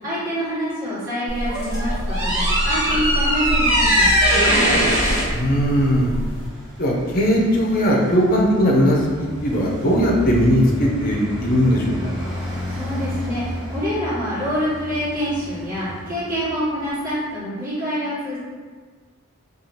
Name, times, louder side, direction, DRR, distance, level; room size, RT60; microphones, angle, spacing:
voice 1, 0.0-4.8 12.7-18.4, equal, 40° right, -11 dB, 1.3 m, -26 dB
sound 1, 1.3-6.5, equal, 60° right, 1.3 m, -19 dB
Traffic noise roadway noise, 1.7-17.2, equal, 10° right, 0.7 m, -33 dB
voice 2, 5.3-6.1 6.8-11.9, equal, 40° left, -1 dB, 0.5 m, -18 dB
2.7 x 2.3 x 3.1 m, 1.5 s
head